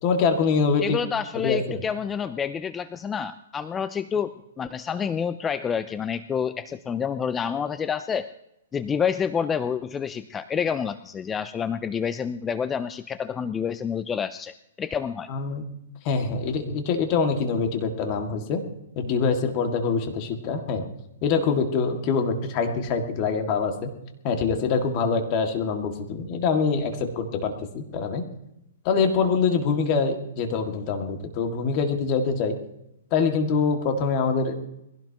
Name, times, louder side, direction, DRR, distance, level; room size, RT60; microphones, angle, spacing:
voice 1, 0.0-1.0 1.4-1.8 15.3-15.6 16.0-18.6 19.0-20.8 21.2-23.9 24.2-28.2 28.8-32.5 33.1-34.5, left 5 dB, 35° left, 4 dB, 2.1 m, -24 dB
voice 2, 0.8-8.3 8.7-15.3, left 7 dB, 15° left, 13 dB, 0.4 m, -28 dB
22.0 x 16.5 x 3.0 m, 0.84 s
hypercardioid pair, 155°, 0 cm